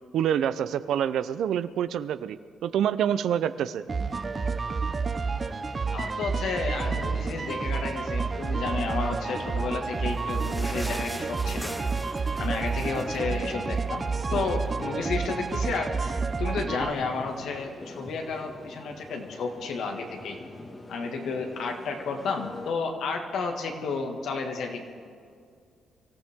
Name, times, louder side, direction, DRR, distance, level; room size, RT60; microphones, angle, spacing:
voice 1, 0.1-3.8, right 9 dB, 75° right, 14 dB, 0.6 m, -27 dB
sound 1, 3.9-16.9, right 4 dB, 35° right, 0.7 m, -30 dB
voice 2, 5.9-11.7 12.4-14.1 14.3-20.4 20.9-24.8, left 4 dB, 75° left, 3 dB, 1.8 m, -32 dB
sound 2, 6.5-22.7, left 2 dB, 30° left, 1.8 m, -44 dB
sound 3, 9.6-14.3 14.7-14.8 15.1-15.2 15.9-16.0, equal, ahead, 0.8 m, -42 dB
24.5 x 14.5 x 3.7 m, 2.2 s
cardioid pair, 90°, 0 cm